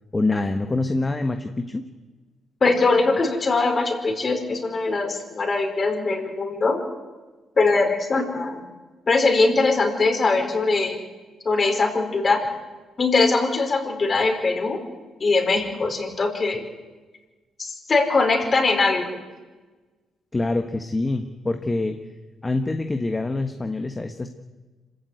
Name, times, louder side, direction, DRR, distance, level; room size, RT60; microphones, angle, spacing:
voice 1, 0.1-1.9 20.3-22.0 22.4-24.3, left 2 dB, 20° left, 6 dB, 1.4 m, -25 dB
voice 2, 2.6-6.8 7.6-8.6 9.1-11.0 11.4-12.4 13.0-14.8 15.2-16.6 17.6-19.2, left 3 dB, 35° left, 4 dB, 4.9 m, -21 dB
26.0 x 15.0 x 9.4 m, 1.3 s
cardioid pair, 90°, 0 cm